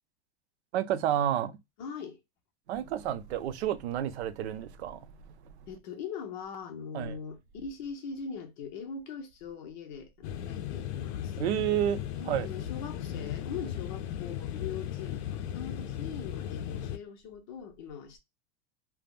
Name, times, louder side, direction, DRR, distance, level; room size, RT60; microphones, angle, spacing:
voice 1, 0.7-1.6 2.7-5.1 5.4-5.5 6.9-7.2 11.4-12.5, right 11 dB, 85° right, 0.6 m, -30 dB
voice 2, 1.8-2.2 5.7-11.4 12.2-18.2, left 6 dB, 45° left, 0.8 m, -41 dB
sound 1, 10.2-17.0, left 10 dB, 90° left, 0.6 m, -36 dB
3.4 x 2.1 x 2.3 m
supercardioid pair, 175°, 32 cm